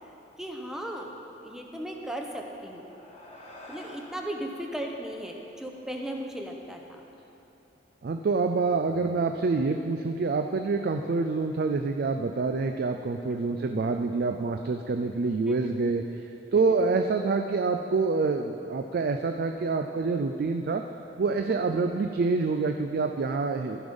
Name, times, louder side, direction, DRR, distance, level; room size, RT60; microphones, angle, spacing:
voice 1, 0.4-1.1 1.4-2.9 3.7-7.0 15.5-15.8 16.5-16.8 21.5-21.8, right 1 dB, 5° right, 1 dB, 0.7 m, -37 dB
sound 1, 2.4-7.0, left 1 dB, 35° left, 1.4 m, -51 dB
voice 2, 8.0-16.0 16.5-20.8 21.2-23.8, right 4 dB, 55° right, 6 dB, 0.4 m, -26 dB
14.0 x 5.3 x 5.3 m, 3.0 s
head